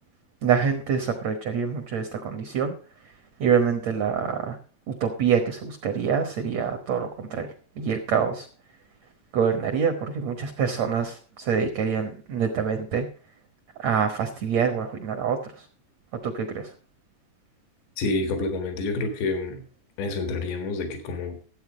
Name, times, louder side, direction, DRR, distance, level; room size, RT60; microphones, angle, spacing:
voice 1, 0.4-2.7 3.4-4.6 4.9-8.5 9.3-13.1 13.8-15.7 16.1-16.7, right 7 dB, 80° right, 6 dB, 1.5 m, -26 dB
voice 2, 18.0-19.6 20.0-21.4, left 3 dB, 85° left, 6 dB, 3.9 m, -28 dB
14.0 x 8.2 x 4.9 m, 0.39 s
omnidirectional pair, 4.9 m